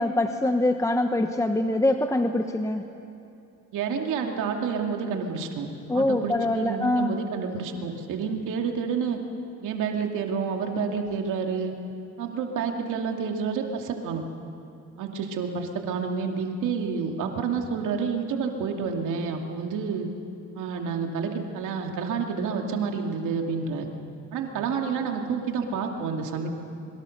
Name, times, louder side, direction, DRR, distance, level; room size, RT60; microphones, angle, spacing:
voice 1, 0.0-2.8 5.9-7.1, left 1 dB, 10° left, 6 dB, 1.0 m, -24 dB
voice 2, 3.7-5.7 5.9-9.2 9.6-11.7 12.2-14.2 15.0-20.1 20.5-23.9 24.3-26.5, right 5 dB, 85° right, 3 dB, 2.4 m, -29 dB
26.0 x 24.0 x 6.6 m, 2.7 s
cardioid pair, 90°, 30 cm